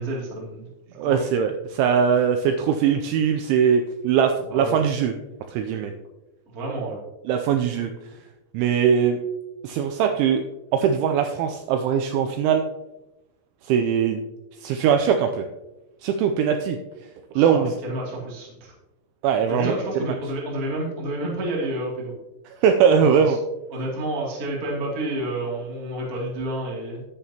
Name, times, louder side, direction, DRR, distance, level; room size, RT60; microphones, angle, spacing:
voice 1, 0.0-1.2 4.5-4.8 6.5-7.0 17.3-18.7 19.5-22.1 23.2-23.4 23.7-27.0, right 1 dB, 40° right, -3 dB, 1.2 m, -30 dB
voice 2, 1.0-5.1 5.5-5.9 7.3-7.9 8.5-9.2 9.6-10.4 10.7-12.6 13.6-14.2 14.6-15.5 16.0-16.8 17.4-17.7 19.2-19.7 20.0-20.1 22.6-23.4, right 7 dB, 85° right, 6 dB, 2.7 m, -21 dB
10.5 x 9.2 x 2.8 m, 1.0 s
omnidirectional pair, 5.9 m